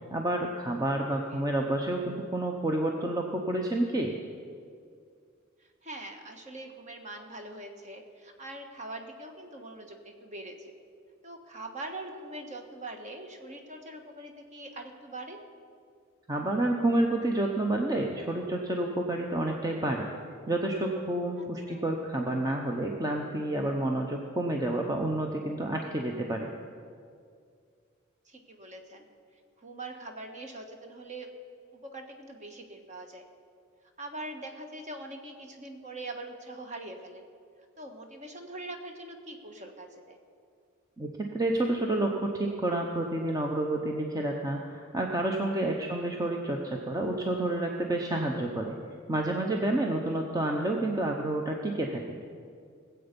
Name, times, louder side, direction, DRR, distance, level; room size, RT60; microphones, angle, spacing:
voice 1, 0.1-4.1 16.3-20.1 20.5-26.5 41.0-48.7 49.1-52.0, right 1 dB, 20° right, 1 dB, 0.7 m, -29 dB
voice 2, 5.6-10.7 11.2-15.4 21.3-21.8 25.8-26.2 28.2-29.1 29.6-31.3 31.7-33.2 34.0-37.2 37.8-40.2 45.7-45.9 50.1-50.3, right 2 dB, 35° right, 4 dB, 1.3 m, -43 dB
19.5 x 7.9 x 5.3 m, 2.2 s
head